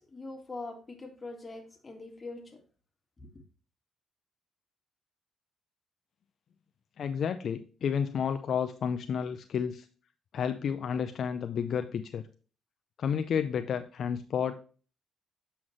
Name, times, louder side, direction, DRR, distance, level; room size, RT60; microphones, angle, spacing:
voice 1, 0.0-2.6 3.2-3.3, left 3 dB, 25° left, 1.9 m, -43 dB
voice 2, 7.0-9.9 10.3-12.2 13.0-14.6, left 7 dB, 60° left, 0.5 m, -31 dB
7.7 x 5.7 x 3.1 m
cardioid pair, 90°, 0 cm